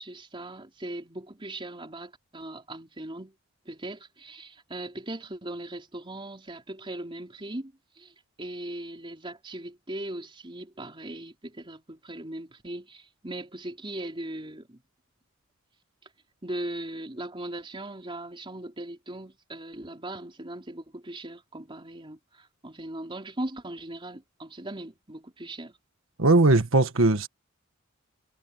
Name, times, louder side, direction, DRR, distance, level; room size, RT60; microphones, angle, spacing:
voice 1, 0.0-3.3 3.7-14.8 16.4-25.7, right 1 dB, 25° right, 3.8 m, -39 dB
voice 2, 26.2-27.3, right 2 dB, 75° right, 1.5 m, -19 dB
head